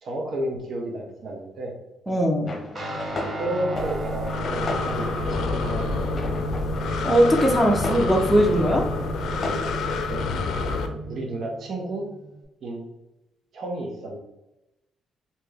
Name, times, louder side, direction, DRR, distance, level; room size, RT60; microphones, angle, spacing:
voice 1, 0.0-1.7 2.8-3.0 3.4-6.5 10.1-10.2 10.6-12.0 12.6-12.9 13.5-14.2, right 1 dB, 55° right, 0 dB, 0.9 m, -32 dB
voice 2, 2.1-2.5 7.0-8.8, equal, ahead, -2 dB, 0.8 m, -20 dB
sound 1, 2.5-10.4, left 2 dB, 35° left, 0.9 m, -36 dB
Guitar, 2.7-12.4, right 1 dB, 35° right, 1.1 m, -34 dB
Breathing, 3.8-10.9, left 4 dB, 70° left, 0.5 m, -29 dB
3.3 x 3.0 x 3.4 m, 0.93 s
cardioid pair, 90°, 0 cm